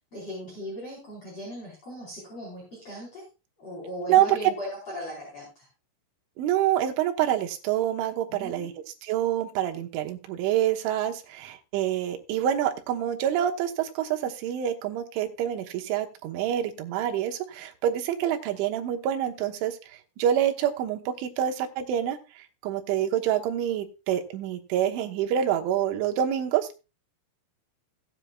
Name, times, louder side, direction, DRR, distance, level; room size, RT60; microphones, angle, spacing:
voice 1, 0.1-3.2 3.6-5.7 8.3-8.7, equal, 30° left, -5 dB, 5.0 m, -38 dB
voice 2, 6.4-8.7 9.0-19.8 20.2-26.8, right 10 dB, 75° right, 4 dB, 3.5 m, -27 dB
16.5 x 9.8 x 2.4 m, 0.29 s
omnidirectional pair, 5.7 m